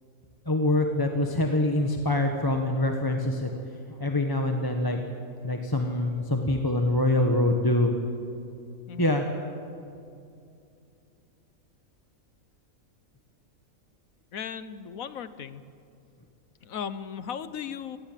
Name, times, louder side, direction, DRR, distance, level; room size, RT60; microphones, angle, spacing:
voice 1, 0.4-5.0 5.4-7.9 9.0-9.2, left 1 dB, 15° left, 3 dB, 1.4 m, -25 dB
voice 2, 14.3-15.6 16.6-18.0, left 7 dB, 70° left, 13 dB, 1.4 m, -36 dB
27.0 x 19.0 x 7.6 m, 2.5 s
omnidirectional pair, 1.5 m